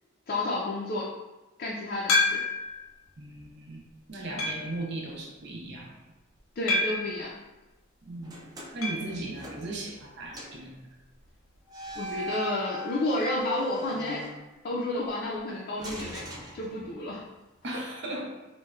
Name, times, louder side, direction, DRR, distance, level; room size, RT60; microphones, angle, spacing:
voice 1, 0.3-1.1 1.6-2.4 6.6-7.3 12.0-14.2 14.6-16.2 16.5-17.2, left 2 dB, 45° left, -5 dB, 0.4 m, -31 dB
sound 1, 2.1-2.8 3.4-3.5 4.4-4.8 6.7-7.2 8.8-9.1 9.4-9.5 9.7-9.8 11.8-11.9, left 3 dB, 90° left, 0.6 m, -27 dB
voice 2, 3.2-5.9 8.0-8.3 8.7-10.9 17.6-18.3, right 2 dB, 60° right, -1 dB, 0.7 m, -37 dB
sound 2, 8.2-10.1 10.3-10.7 11.7-14.9 15.8-17.2, right 2 dB, 20° right, 0.4 m, -39 dB
4.0 x 2.1 x 2.4 m, 1.1 s
head